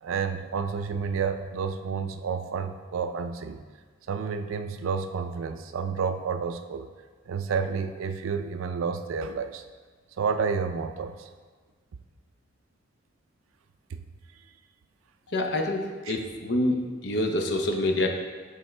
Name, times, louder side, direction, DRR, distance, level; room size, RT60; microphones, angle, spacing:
voice 1, 0.0-3.6 4.1-6.9 7.3-9.6 10.2-11.3 13.9-14.0 16.1-16.2, right 5 dB, 85° right, 9 dB, 0.4 m, -30 dB
voice 2, 15.3-16.8 17.0-18.1, left 1 dB, 60° left, 3 dB, 0.7 m, -26 dB
10.5 x 3.5 x 3.2 m, 1.5 s
head